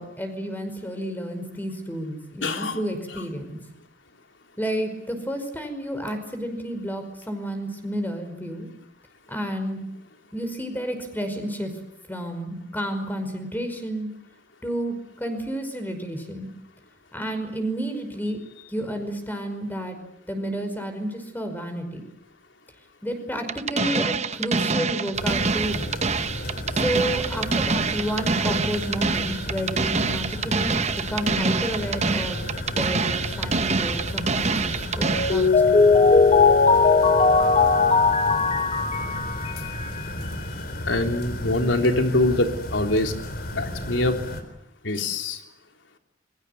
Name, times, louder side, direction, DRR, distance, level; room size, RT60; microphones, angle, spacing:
voice 1, 0.0-3.6 4.6-8.7 9.3-9.8 10.3-11.7 12.1-14.1 14.6-16.5 17.1-18.4 18.7-20.0 20.3-22.0 23.0-25.9 26.7-30.8 31.1-32.4 32.7-35.8, equal, 10° left, 7 dB, 5.3 m, -31 dB
voice 2, 2.4-2.8 23.9-24.0 39.1-39.2 40.9-43.1 43.5-44.1 44.8-45.4, left 2 dB, 85° left, 5 dB, 3.6 m, -24 dB
sound 1, 23.5-35.5, right 4 dB, 35° right, 0.9 m, -26 dB
sound 2, 25.1-44.4, left 1 dB, 55° left, 4.1 m, -33 dB
Mallet percussion, 35.0-40.0, left 4 dB, 35° left, 1.5 m, -18 dB
29.0 x 23.0 x 8.2 m, 0.81 s
head